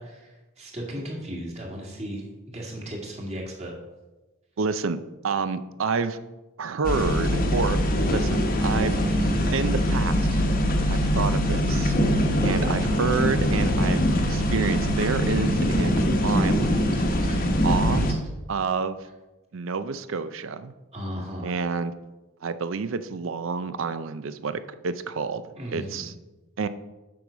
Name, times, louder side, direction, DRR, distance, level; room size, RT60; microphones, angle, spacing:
voice 1, 0.0-3.7 8.9-9.6 12.5-12.8 17.2-17.4 20.9-21.6 25.5-26.1, equal, 30° right, -1 dB, 1.8 m, -36 dB
voice 2, 4.6-5.0 5.2-6.2 6.6-7.8 8.1-9.0 9.5-10.5 10.9-11.9 12.4-17.0 17.6-18.0 18.5-19.0 19.5-20.7 21.4-21.9 22.4-25.4 25.7-26.1 26.6-26.7, right 5 dB, 65° right, 12 dB, 0.5 m, -28 dB
sound 1, 6.8-18.1, equal, 40° left, 1.0 m, -23 dB
7.7 x 5.5 x 5.0 m, 1.1 s
head